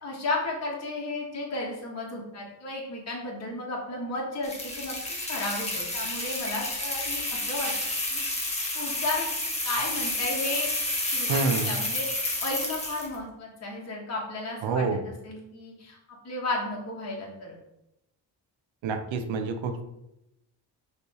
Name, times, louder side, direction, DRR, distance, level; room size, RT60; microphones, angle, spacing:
voice 1, 0.0-5.0 5.3-7.7 8.1-8.5 8.7-10.7 11.1-16.0 16.2-17.5, left 2 dB, 35° left, -3 dB, 1.2 m, -33 dB
sound 1, 4.4-13.2, left 1 dB, 15° left, 1.0 m, -30 dB
voice 2, 11.3-11.8 14.6-15.0 18.8-19.8, right 4 dB, 90° right, 7 dB, 0.7 m, -27 dB
5.3 x 3.2 x 3.1 m, 0.88 s
cardioid pair, 115°, 45 cm